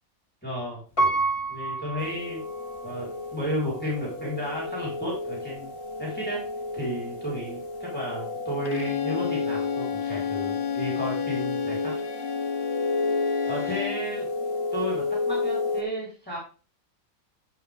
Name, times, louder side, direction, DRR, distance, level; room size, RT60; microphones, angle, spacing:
voice 1, 0.4-0.8 1.5-2.4 2.8-6.4 6.7-11.9 13.4-14.3 14.7-16.4, equal, 5° left, -5 dB, 4.6 m, -33 dB
Piano, 1.0-2.9 3.5-3.6, right 3 dB, 20° left, 3.7 m, -28 dB
sound 1, 2.0-15.8, left 3 dB, 70° left, 2.4 m, -32 dB
Bowed string instrument, 8.7-14.1, left 8 dB, 45° left, 1.0 m, -31 dB
14.5 x 6.1 x 3.7 m, 0.37 s
omnidirectional pair, 1.4 m